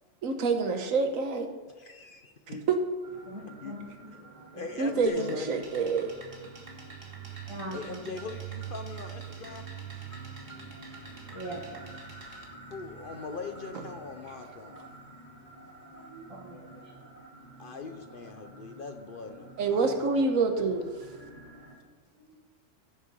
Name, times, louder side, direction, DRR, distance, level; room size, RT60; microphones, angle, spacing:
voice 1, 0.2-1.5 2.7-2.8 4.8-6.1 13.7-13.8 16.1-16.3 19.6-20.8, right 4 dB, 85° right, 5 dB, 1.4 m, -27 dB
voice 2, 1.8-2.6 3.6-3.7 4.5-5.6 7.7-9.7 12.7-14.8 17.6-19.4 19.7-20.0, left 4 dB, 50° left, 7 dB, 0.8 m, -40 dB
sound 1, 3.0-21.7, right 5 dB, 30° left, 3.3 m, -47 dB
voice 3, 3.2-4.7 5.1-5.2 7.5-8.1 11.3-11.9 14.0-14.1 16.3-17.3 17.6-17.8 21.1-21.8 22.2-22.3, right 1 dB, 25° right, -7 dB, 2.0 m, -44 dB
sound 2, 5.1-12.4, right 2 dB, 45° right, 1.8 m, -50 dB
14.5 x 6.5 x 5.4 m, 1.4 s
omnidirectional pair, 1.4 m